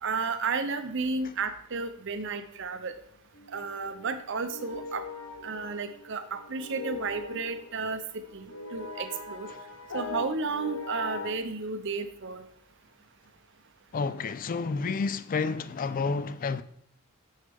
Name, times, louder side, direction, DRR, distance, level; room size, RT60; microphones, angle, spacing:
voice 1, 0.0-2.9 3.5-5.0 5.4-8.0 8.3-9.5 9.9-12.4, right 4 dB, 60° right, 0.7 m, -32 dB
sound 1, 3.3-11.3, left 4 dB, 70° left, 0.9 m, -41 dB
voice 2, 13.9-16.6, left 4 dB, 40° left, 0.3 m, -30 dB
6.5 x 6.5 x 3.5 m
head